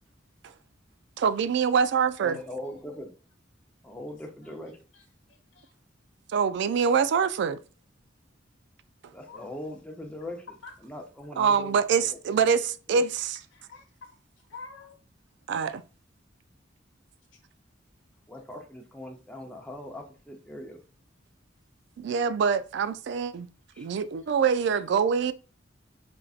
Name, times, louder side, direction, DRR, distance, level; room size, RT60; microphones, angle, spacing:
voice 1, 1.2-2.4 6.3-7.6 11.4-13.4 15.5-15.8 22.0-23.5 23.8-25.3, right 6 dB, 65° right, 0.3 m, -25 dB
voice 2, 2.2-3.1 3.8-4.8 9.1-10.5 10.8-12.2 12.9-13.0 18.3-20.8 23.7-23.9, left 1 dB, 5° left, 0.6 m, -41 dB
voice 3, 4.9-5.7 9.3-9.5 10.6-10.7 13.5-13.8 14.5-15.0, left 4 dB, 85° left, 1.1 m, -47 dB
4.4 x 2.6 x 2.4 m
head